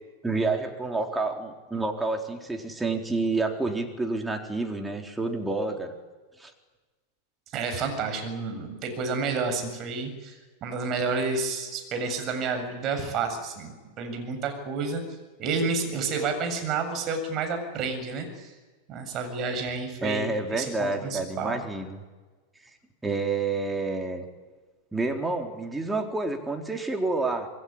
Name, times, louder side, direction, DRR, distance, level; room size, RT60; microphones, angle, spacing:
voice 1, 0.2-6.0 6.4-6.5 20.0-22.0 23.0-24.2 24.9-27.5, right 3 dB, 5° right, 3 dB, 4.0 m, -29 dB
voice 2, 7.5-15.0 15.4-18.5 18.9-21.6, right 4 dB, 35° right, 6 dB, 7.6 m, -30 dB
27.5 x 21.0 x 9.9 m, 1.3 s
figure-of-eight pair, 90°, 0 cm